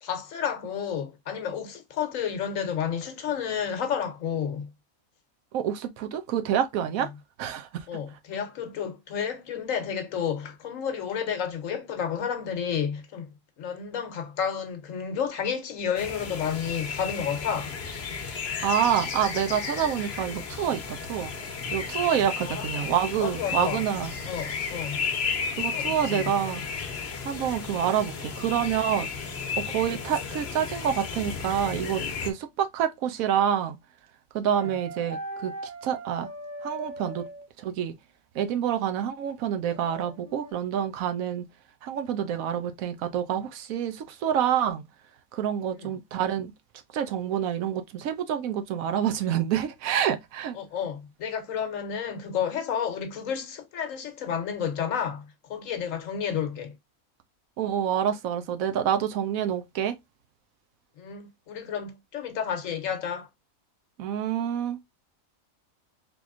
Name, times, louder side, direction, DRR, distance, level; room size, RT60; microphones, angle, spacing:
voice 1, 0.0-4.7 7.0-7.1 7.9-13.3 13.6-17.7 22.4-22.9 23.2-23.8 24.3-25.1 25.7-26.3 29.8-30.0 34.5-34.7 45.8-45.9 50.5-56.7 61.0-63.3, left 7 dB, 70° left, 1.2 m, -31 dB
voice 2, 5.5-7.1 7.4-7.8 18.6-21.3 21.7-24.1 25.6-26.6 27.2-29.1 29.6-33.8 34.3-35.5 35.8-36.3 36.6-37.2 37.6-37.9 38.3-41.4 41.8-44.8 45.3-46.5 46.9-50.6 57.6-59.9 64.0-64.8, right 9 dB, 80° right, 1.1 m, -27 dB
sound 1, 16.0-32.3, left 5 dB, 55° left, 0.9 m, -33 dB
sound 2, 34.6-37.5 39.7-40.5, right 2 dB, 40° right, 0.8 m, -39 dB
4.0 x 3.0 x 2.4 m
omnidirectional pair, 1.5 m